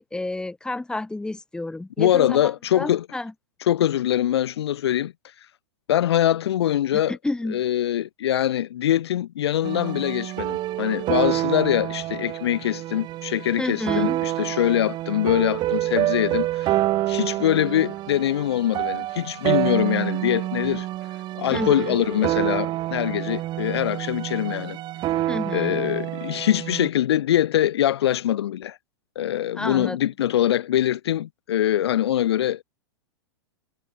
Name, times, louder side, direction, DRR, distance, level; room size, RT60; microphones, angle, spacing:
voice 1, 0.0-3.3 7.1-7.6 13.6-14.2 21.5-22.0 25.3-25.8 29.6-30.0, left 2 dB, 5° left, 1.7 m, -30 dB
voice 2, 2.0-3.1 3.6-5.1 5.9-7.1 7.5-16.8 17.1-20.9 21.4-24.8 25.5-28.8 29.2-32.6, left 12 dB, 75° left, 0.5 m, -23 dB
sound 1, 9.6-26.9, right 15 dB, 30° right, 1.1 m, -27 dB
hypercardioid pair, 115°, 14 cm